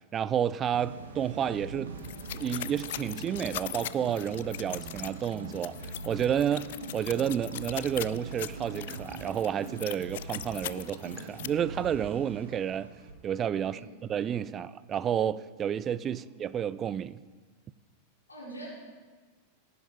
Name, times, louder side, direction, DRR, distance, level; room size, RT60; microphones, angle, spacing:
voice 1, 0.1-1.9 2.3-12.9 13.2-13.8 14.1-17.2, right 9 dB, 25° right, 0.3 m, -30 dB
sound 1, 0.7-13.1, right 3 dB, 70° right, 1.2 m, -42 dB
sound 2, 2.0-11.5, left 14 dB, 55° left, 0.3 m, -41 dB
voice 2, 18.3-18.7, right 2 dB, 80° left, 4.0 m, -44 dB
16.0 x 9.7 x 3.7 m
figure-of-eight pair, 90°, 0 cm